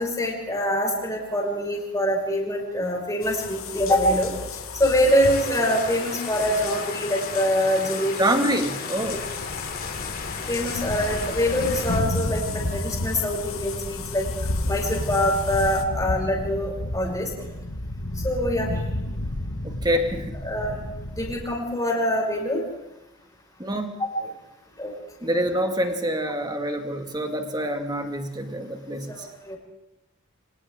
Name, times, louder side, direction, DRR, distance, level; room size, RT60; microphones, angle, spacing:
voice 1, 0.0-4.3 4.8-8.3 10.5-14.3 14.7-17.3 18.2-18.8 20.4-20.8 21.1-22.6 24.0-24.3 24.8-24.9 25.2-25.3 29.2-29.6, equal, 15° left, -2 dB, 5.4 m, -24 dB
sound 1, 3.2-15.8, left 7 dB, 90° left, 1.4 m, -37 dB
sound 2, 5.1-12.0, left 4 dB, 45° left, 3.0 m, -35 dB
voice 2, 8.2-9.2 19.6-20.4 23.6-23.9 25.2-29.3, right 1 dB, 20° right, 5 dB, 2.0 m, -26 dB
Thunder, 9.0-21.6, left 1 dB, 70° left, 1.7 m, -31 dB
28.5 x 24.5 x 3.7 m, 0.95 s
head